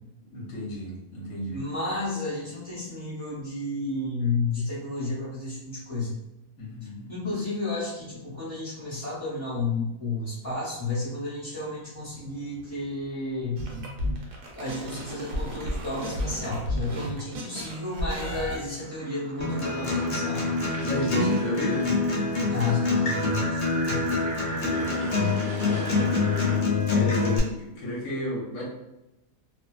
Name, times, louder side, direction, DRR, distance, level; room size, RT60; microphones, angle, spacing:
voice 1, 0.3-1.6 6.6-7.1 20.7-21.9 24.6-25.2 25.6-26.3 26.6-28.6, equal, 60° left, -4 dB, 1.0 m, -33 dB
voice 2, 1.5-6.2 7.1-13.7 14.5-20.6 22.5-24.2, left 3 dB, 20° left, -9 dB, 0.8 m, -32 dB
sound 1, 12.0-13.1 14.6-15.3 17.1-26.6, right 2 dB, 55° right, 0.6 m, -39 dB
sound 2, 13.6-18.6, equal, 70° right, 0.9 m, -32 dB
Acoustic guitar, 19.4-27.4, left 3 dB, 85° left, 0.5 m, -26 dB
2.6 x 2.2 x 2.3 m, 0.94 s
omnidirectional pair, 1.7 m